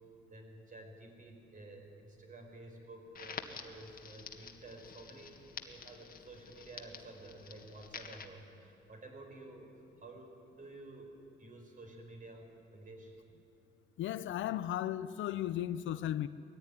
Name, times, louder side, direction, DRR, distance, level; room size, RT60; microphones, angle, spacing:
voice 1, 0.3-5.3 5.6-13.1, right 2 dB, 40° right, 5.0 m, -52 dB
Crackle, 3.1-8.2, left 6 dB, 45° left, 1.7 m, -49 dB
voice 2, 14.0-16.3, left 12 dB, 75° left, 0.6 m, -35 dB
21.0 x 14.5 x 10.0 m
cardioid pair, 90°, 20 cm